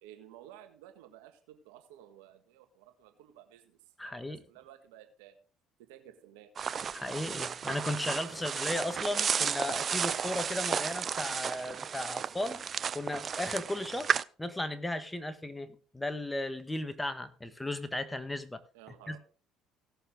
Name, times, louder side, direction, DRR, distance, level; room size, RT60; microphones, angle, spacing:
voice 1, 0.0-5.4 5.8-6.6 8.4-8.5 18.7-19.2, right 11 dB, 85° right, 7 dB, 1.6 m, -54 dB
voice 2, 4.0-4.4 6.9-12.6 12.9-18.6 19.1-19.2, left 1 dB, 10° left, 11 dB, 1.4 m, -35 dB
sound 1, 6.6-14.2, right 7 dB, 45° right, 0.5 m, -33 dB
17.5 x 6.9 x 3.8 m, 0.37 s
hypercardioid pair, 70°, 0 cm